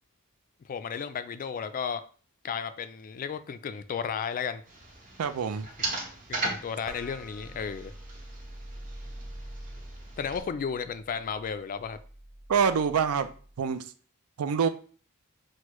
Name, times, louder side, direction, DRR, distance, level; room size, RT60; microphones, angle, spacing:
voice 1, 0.6-2.0 2.4-4.6 6.3-7.9 10.2-12.0, left 6 dB, 40° left, 0.3 m, -33 dB
sound 1, 4.7-10.4, right 2 dB, 35° right, 1.2 m, -38 dB
voice 2, 5.2-5.7 12.5-13.3 13.6-13.8 14.4-14.7, right 6 dB, 70° right, 0.4 m, -25 dB
sound 2, 6.9-13.6, right 1 dB, ahead, 0.7 m, -45 dB
6.2 x 2.2 x 3.0 m
head